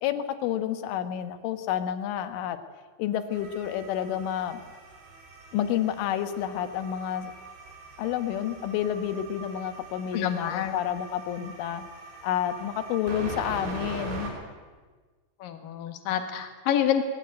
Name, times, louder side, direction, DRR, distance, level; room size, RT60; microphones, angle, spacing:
voice 1, 0.0-2.6 3.0-4.6 5.5-7.3 8.0-11.8 12.2-14.3, left 10 dB, 80° left, 10 dB, 3.7 m, -29 dB
sound 1, 3.3-14.3, right 3 dB, 60° right, 6.6 m, -42 dB
voice 2, 10.1-10.8 15.4-17.0, left 10 dB, 55° left, 7 dB, 2.9 m, -27 dB
20.0 x 17.5 x 9.4 m, 1.4 s
omnidirectional pair, 5.6 m